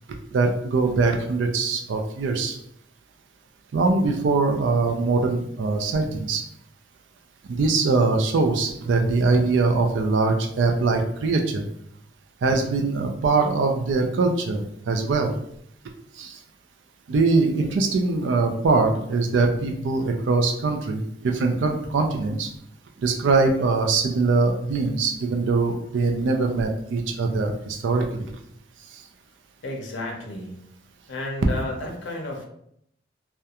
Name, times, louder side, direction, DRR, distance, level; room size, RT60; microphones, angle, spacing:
voice 1, 0.3-2.5 3.7-6.4 7.6-11.6 12.4-15.3 17.1-21.0 21.4-22.5 23.0-27.5 27.8-28.0, right 3 dB, 85° right, 4 dB, 0.4 m, -22 dB
voice 2, 29.6-30.6 31.1-32.5, left 2 dB, 85° left, 1 dB, 0.5 m, -32 dB
2.3 x 2.1 x 2.8 m, 0.72 s
head